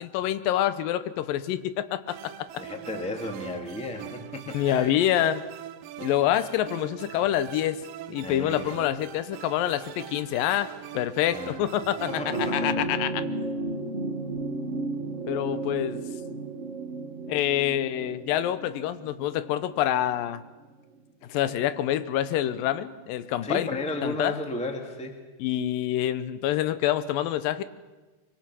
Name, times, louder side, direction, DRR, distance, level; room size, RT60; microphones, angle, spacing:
voice 1, 0.0-2.6 4.5-5.4 6.0-7.8 8.1-13.1 15.3-16.0 17.3-20.4 21.3-23.7 24.0-24.4 25.4-27.6, left 12 dB, 85° left, 13 dB, 2.5 m, -27 dB
sound 1, 2.1-12.7, right 12 dB, 85° right, 2.5 m, -42 dB
voice 2, 2.6-4.9 8.2-8.7 11.3-11.6 12.1-12.9 23.4-25.2, left 2 dB, 5° left, 3 dB, 1.3 m, -34 dB
sound 2, 12.0-20.7 21.9-22.0, right 2 dB, 65° right, 0.7 m, -33 dB
24.0 x 23.5 x 6.1 m, 1.3 s
omnidirectional pair, 3.9 m